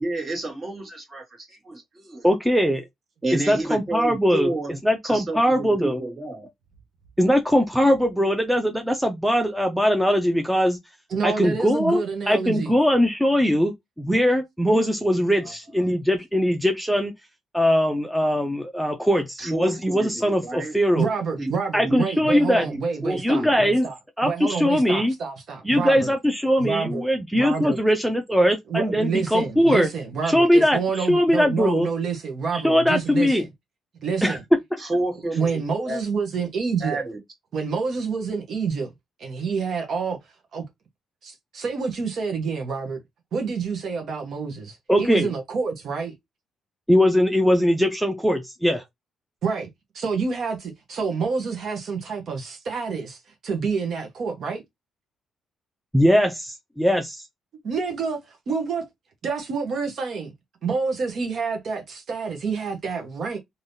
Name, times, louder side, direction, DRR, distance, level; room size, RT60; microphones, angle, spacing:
voice 1, 0.0-2.3 3.2-4.8 5.0-6.5 19.4-20.7 21.4-21.5 21.8-22.0 22.3-23.7 34.8-35.6 35.9-36.0 36.8-37.2, right 2 dB, 30° right, 1.8 m, -30 dB
voice 2, 2.2-2.8 3.3-4.6 4.8-6.0 7.2-10.8 11.2-17.1 17.5-21.1 21.7-22.7 23.1-23.9 24.2-25.1 25.6-29.9 30.2-31.9 32.5-33.5 34.2-34.4 44.9-45.3 46.9-48.8 55.9-57.2, equal, ahead, 0.6 m, -21 dB
voice 3, 11.1-12.7 15.4-15.5 15.8-16.0 20.9-23.9 24.2-26.1 26.6-27.1 27.3-27.8 28.7-33.5 34.0-34.4 35.3-37.0 37.5-38.9 39.2-40.7 41.2-43.0 43.3-46.1 49.4-49.7 49.9-54.6 57.6-58.9 59.2-60.3 60.6-63.4, right 5 dB, 60° right, 1.0 m, -28 dB
3.4 x 2.7 x 2.6 m
cardioid pair, 90°, 0 cm